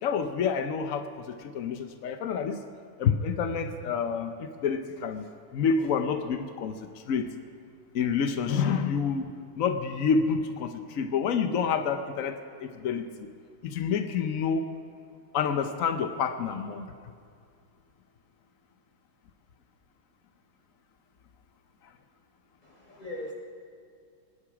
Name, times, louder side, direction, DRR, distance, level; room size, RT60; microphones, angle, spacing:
voice 1, 0.0-2.6 3.0-4.3 4.6-5.3 5.5-6.7 7.1-7.3 7.9-9.3 9.6-13.3 13.6-14.7 15.3-16.8, left 6 dB, 80° left, 7 dB, 0.7 m, -28 dB
voice 2, 22.6-23.3, left 1 dB, 20° left, -4 dB, 3.8 m, -39 dB
26.0 x 10.5 x 4.9 m, 2.3 s
omnidirectional pair, 2.4 m